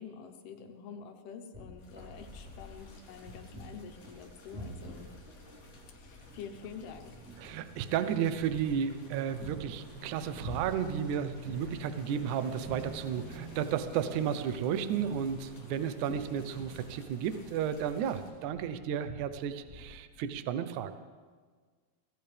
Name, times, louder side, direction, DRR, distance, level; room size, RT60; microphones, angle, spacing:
voice 1, 0.0-5.1 5.9-7.1, left 6 dB, 75° left, 5 dB, 3.0 m, -47 dB
sound 1, 1.5-20.4, equal, ahead, 3.9 m, -49 dB
sound 2, 1.8-18.3, left 2 dB, 55° left, 5.3 m, -58 dB
sound 3, 4.3-19.4 19.6-19.7, equal, 50° right, 3.8 m, -49 dB
voice 2, 7.4-20.9, right 8 dB, 85° right, 10 dB, 1.7 m, -33 dB
23.5 x 17.0 x 3.4 m, 1.5 s
omnidirectional pair, 4.6 m